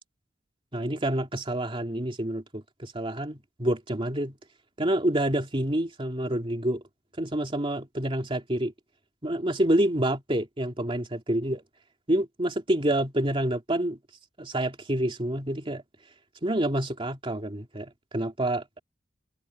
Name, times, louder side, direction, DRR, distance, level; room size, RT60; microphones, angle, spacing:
voice 1, 0.7-4.4 4.8-6.8 7.2-8.7 9.2-11.6 12.1-14.0 14.4-15.8 16.4-18.8, right 1 dB, 30° right, 2.7 m, -28 dB
head